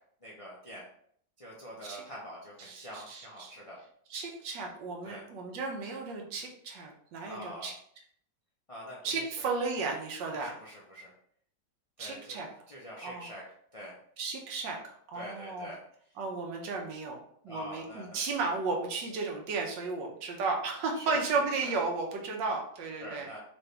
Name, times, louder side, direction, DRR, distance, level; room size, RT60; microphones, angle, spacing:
voice 1, 0.2-0.8 1.4-3.8 5.0-5.3 7.3-7.7 8.7-9.5 10.3-11.1 12.0-13.4 13.7-14.0 15.1-15.8 17.5-18.5 20.9-21.7 23.0-23.4, equal, 60° left, -5 dB, 0.3 m, -45 dB
voice 2, 2.6-3.5 4.1-7.7 9.0-10.5 12.0-12.5 13.0-13.3 14.2-15.7 16.2-17.2 17.4-23.3, right 4 dB, 85° right, 1 dB, 1.5 m, -34 dB
4.8 x 2.6 x 3.2 m, 0.65 s
omnidirectional pair, 1.9 m